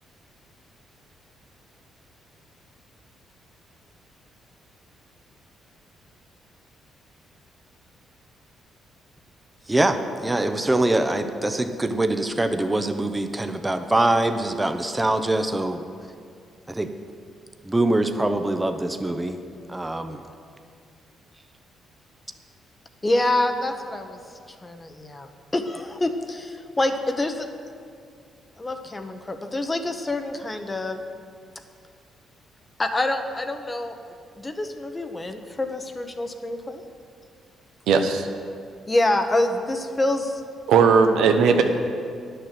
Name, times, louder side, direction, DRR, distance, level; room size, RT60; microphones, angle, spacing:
voice 1, 9.7-15.8 16.7-16.9 17.6-19.4 19.7-20.2, right 2 dB, 15° right, 8 dB, 0.7 m, -23 dB
voice 2, 23.0-24.2 24.6-27.5 28.6-31.0 32.8-34.0 34.4-36.8 38.9-40.4, left 1 dB, 20° left, 6 dB, 0.9 m, -26 dB
voice 3, 37.9-38.3 40.7-41.6, right 5 dB, 85° right, 5 dB, 0.9 m, -17 dB
10.5 x 6.7 x 7.5 m, 2.3 s
cardioid pair, 90°, 0 cm